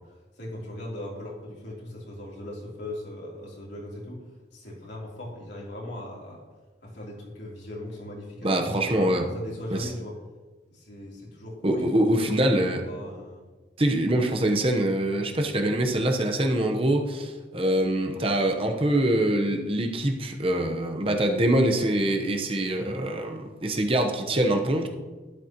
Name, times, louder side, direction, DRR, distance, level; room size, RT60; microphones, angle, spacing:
voice 1, 0.0-4.2 4.5-6.4 6.8-8.9 9.3-10.1 10.7-13.4, left 1 dB, 80° left, -4 dB, 3.3 m, -39 dB
voice 2, 8.4-9.3 9.7-9.9 11.6-12.8 13.8-24.9, right 1 dB, 30° right, 3 dB, 1.0 m, -24 dB
12.0 x 11.5 x 3.0 m, 1.3 s
head